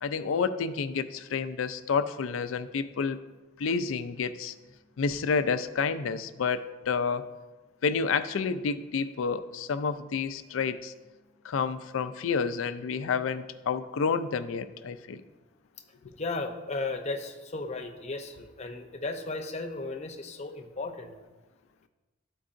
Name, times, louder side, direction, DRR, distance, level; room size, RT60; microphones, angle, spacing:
voice 1, 0.0-3.2 3.6-4.5 5.0-7.3 7.8-10.9 11.4-15.2, left 5 dB, 85° left, 11 dB, 0.4 m, -29 dB
voice 2, 16.2-21.1, left 3 dB, 35° left, 4 dB, 0.7 m, -35 dB
13.0 x 4.6 x 2.5 m, 1.2 s
head